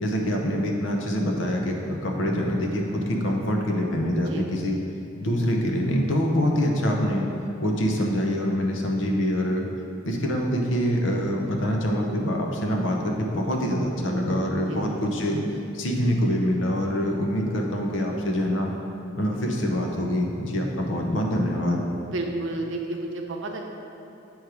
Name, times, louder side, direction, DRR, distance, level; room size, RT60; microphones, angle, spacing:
voice 1, 0.0-4.8 5.2-7.3 7.6-9.7 10.0-15.4 15.7-18.7 19.2-21.8, equal, 75° left, 1 dB, 0.8 m, -25 dB
voice 2, 22.1-23.6, right 2 dB, 75° right, 2 dB, 0.7 m, -31 dB
8.1 x 3.2 x 4.8 m, 2.8 s
head